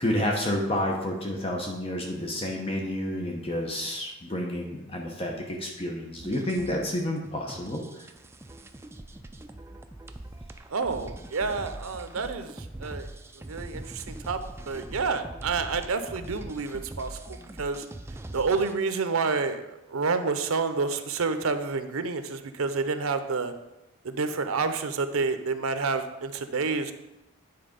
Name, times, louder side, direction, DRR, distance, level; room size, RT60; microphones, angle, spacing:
voice 1, 0.0-8.0, left 1 dB, 25° left, 0 dB, 0.8 m, -30 dB
sound 1, 6.2-18.8, right 1 dB, 10° right, 0.3 m, -42 dB
voice 2, 10.7-13.1 13.5-14.4 14.7-17.9 18.3-23.5 24.0-26.9, right 4 dB, 80° right, 9 dB, 0.7 m, -29 dB
9.6 x 4.0 x 5.2 m, 0.95 s
head